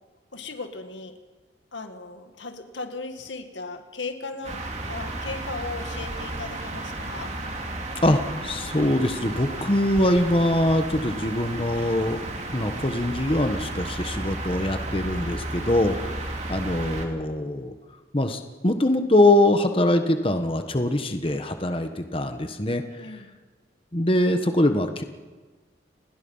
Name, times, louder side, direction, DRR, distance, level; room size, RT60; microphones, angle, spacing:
voice 1, 0.3-1.2 1.7-7.3 16.1-16.2 23.0-23.4, left 3 dB, 85° left, 7 dB, 2.1 m, -37 dB
sound 1, 4.4-17.1, right 2 dB, 40° right, 2.9 m, -33 dB
voice 2, 8.0-12.2 12.5-17.7 18.1-23.2 23.9-25.0, left 1 dB, 30° left, 7 dB, 1.3 m, -23 dB
29.5 x 20.0 x 5.6 m, 1.3 s
head